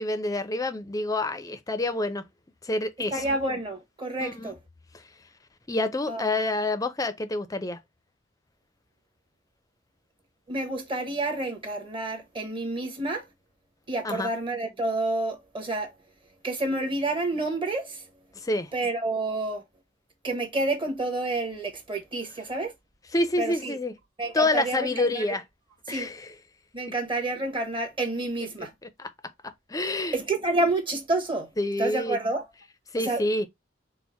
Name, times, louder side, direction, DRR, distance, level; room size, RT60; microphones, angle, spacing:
voice 1, 0.0-2.2 2.6-3.2 4.2-4.5 5.7-7.8 14.0-14.3 18.4-18.7 23.1-23.9 24.3-25.4 25.9-26.3 28.8-29.1 29.7-30.2 31.6-32.2 32.9-33.5, left 2 dB, 20° left, 0.5 m, -27 dB
voice 2, 3.1-4.6 6.1-6.2 10.5-13.2 13.9-15.9 16.4-18.0 18.7-19.6 20.2-22.7 23.4-23.8 24.2-25.4 25.9-26.1 26.7-28.7 30.1-31.5 31.8-32.4 33.0-33.5, right 2 dB, 25° right, 1.0 m, -29 dB
4.4 x 2.1 x 4.2 m
head